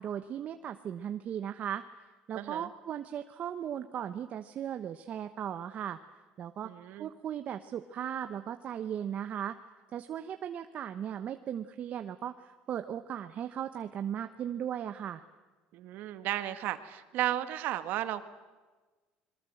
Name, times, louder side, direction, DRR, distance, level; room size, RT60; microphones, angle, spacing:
voice 1, 0.0-1.8 2.3-6.0 6.4-6.7 7.0-9.6 9.9-15.2, right 9 dB, 45° right, 8 dB, 1.1 m, -37 dB
voice 2, 2.4-2.7 6.6-7.1 15.7-18.3, right 13 dB, 65° right, 10 dB, 1.8 m, -34 dB
27.0 x 22.0 x 7.9 m, 1.3 s
cardioid pair, 115°, 3 cm